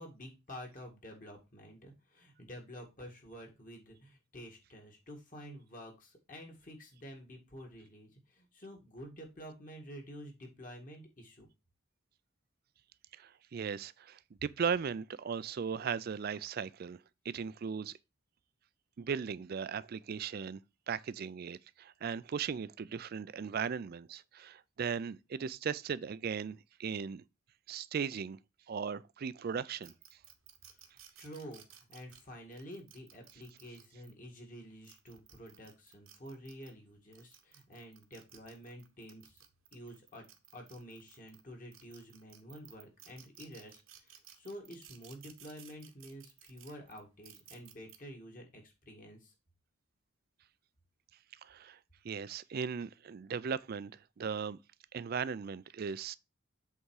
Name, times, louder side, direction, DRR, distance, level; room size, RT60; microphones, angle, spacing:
voice 1, 0.0-11.5 31.2-39.4 39.7-40.2 40.5-49.3, equal, 40° left, 1.9 m, -49 dB
voice 2, 13.2-17.0 17.3-17.9 19.0-20.6 20.9-27.2 27.7-28.4 28.7-29.9 51.4-51.8 52.0-53.9 54.2-54.6 54.9-56.1, right 6 dB, 45° right, 0.3 m, -37 dB
sound 1, 29.8-34.1 34.7-36.7 37.1-41.4 41.7-48.0, right 10 dB, 75° right, 1.1 m, -57 dB
8.0 x 3.6 x 4.7 m
head